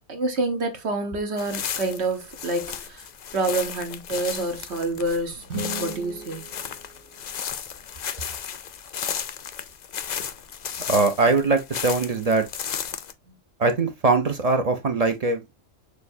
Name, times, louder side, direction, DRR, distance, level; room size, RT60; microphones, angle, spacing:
voice 1, 0.1-3.1 3.3-5.4 5.8-6.4 13.3-13.4, right 2 dB, 65° right, 1.3 m, -27 dB
sound 1, 1.4-13.1, left 8 dB, 65° left, 0.4 m, -34 dB
sound 2, 5.4-7.6, right 2 dB, 90° right, 1.3 m, -37 dB
voice 2, 10.9-12.5 13.6-15.4, right 3 dB, 40° right, 0.6 m, -21 dB
6.4 x 2.3 x 2.6 m
omnidirectional pair, 1.2 m